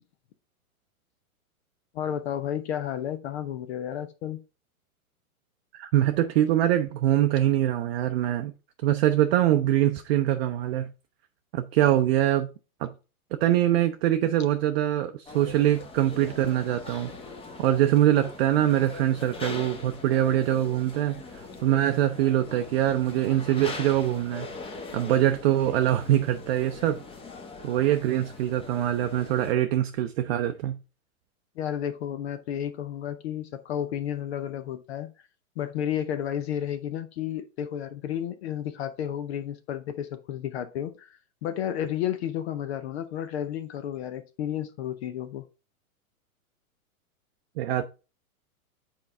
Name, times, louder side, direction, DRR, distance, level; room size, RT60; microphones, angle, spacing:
voice 1, 1.9-4.4 31.6-35.1 35.6-45.5, left 10 dB, 50° left, 0.7 m, -32 dB
voice 2, 5.7-8.5 8.8-10.9 11.5-12.5 12.8-12.9 13.4-17.1 17.6-24.5 24.9-27.0 27.6-30.8 47.6-47.8, right 12 dB, 45° right, 0.6 m, -23 dB
sound 1, 15.3-29.5, left 3 dB, 15° left, 0.9 m, -42 dB
7.6 x 4.6 x 3.5 m
hypercardioid pair, 115°, 44 cm